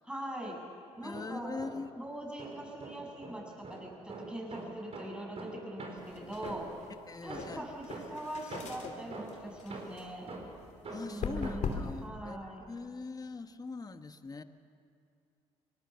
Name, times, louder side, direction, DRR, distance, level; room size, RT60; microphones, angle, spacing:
voice 1, 0.0-0.6 1.0-1.6 2.0-6.7 7.2-10.3 11.1-12.6, right 1 dB, 5° right, 0 dB, 7.2 m, -42 dB
sound 1, 0.9-2.0 2.4-6.9 7.3-11.8, right 2 dB, 50° right, 4.6 m, -45 dB
voice 2, 1.0-2.0 7.1-7.6 10.9-14.4, left 4 dB, 30° left, 9 dB, 1.3 m, -42 dB
sound 2, 6.0-12.1, left 5 dB, 60° left, 2.8 m, -42 dB
24.5 x 19.0 x 7.1 m, 2.4 s
supercardioid pair, 60°, 14 cm